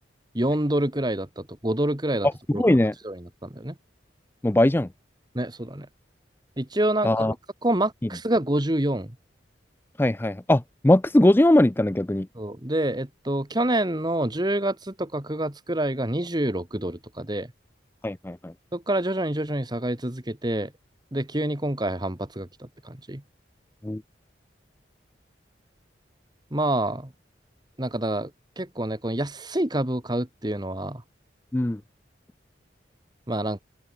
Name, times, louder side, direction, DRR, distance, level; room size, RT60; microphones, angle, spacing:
voice 1, 0.3-2.3 2.5-2.6 3.0-3.8 5.3-5.9 6.6-7.3 7.6-9.2 12.3-17.5 18.7-20.7 21.1-23.2 26.5-27.1 27.8-28.3 28.6-31.0 33.3-33.6, right 1 dB, 20° right, 1.7 m, -27 dB
voice 2, 2.5-2.9 4.4-4.9 7.0-7.3 10.0-12.3 18.0-18.5 23.8-24.0 31.5-31.8, left 1 dB, 10° left, 0.4 m, -20 dB
open air
head